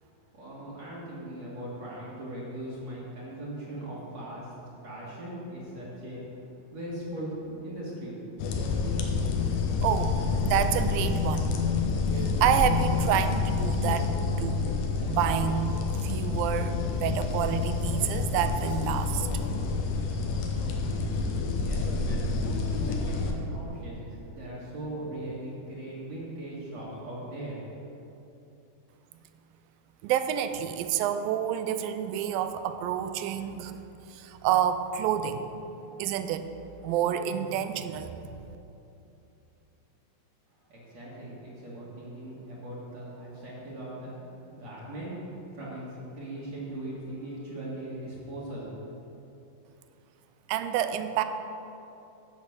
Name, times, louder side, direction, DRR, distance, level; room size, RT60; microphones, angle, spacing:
voice 1, 0.0-8.3 21.3-28.0 40.6-48.8, right 1 dB, 50° right, -8 dB, 2.9 m, -40 dB
sound 1, 8.4-23.3, left 4 dB, 70° left, 2.4 m, -28 dB
voice 2, 9.8-10.2 10.4-11.5 12.1-14.1 14.4-14.7 15.1-19.3 30.0-33.8 34.1-35.5 36.0-36.5 36.8-38.2 50.5-51.2, right 9 dB, 80° right, 10 dB, 2.3 m, -28 dB
11.0 x 6.4 x 8.0 m, 2.9 s
omnidirectional pair, 4.3 m